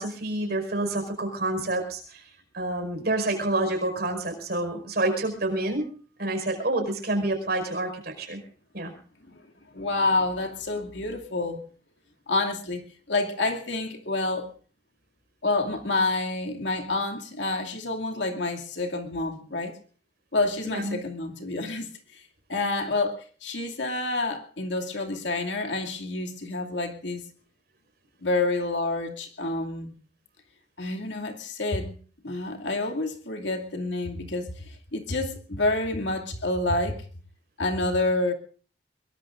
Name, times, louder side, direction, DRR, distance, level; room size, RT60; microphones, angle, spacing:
voice 1, 0.0-2.2 2.5-5.9 6.2-8.4 8.7-8.9 20.6-21.0, right 2 dB, 60° right, 5 dB, 5.2 m, -28 dB
voice 2, 9.7-11.6 12.3-14.5 15.4-19.8 20.3-22.2 22.5-27.3 28.2-29.9 30.8-32.0 32.2-37.0 37.6-38.3, left 2 dB, 80° left, 3 dB, 2.6 m, -28 dB
23.0 x 22.0 x 2.6 m, 0.41 s
head